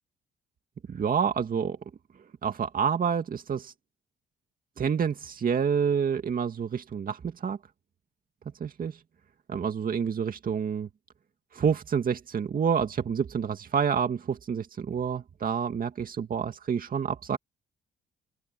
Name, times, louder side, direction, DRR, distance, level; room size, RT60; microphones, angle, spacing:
voice 1, 0.9-1.8 2.4-3.7 4.8-7.6 8.6-8.9 9.5-10.9 11.5-17.4, right 7 dB, 45° right, 2.1 m, -28 dB
open air
cardioid pair, 90°, 20 cm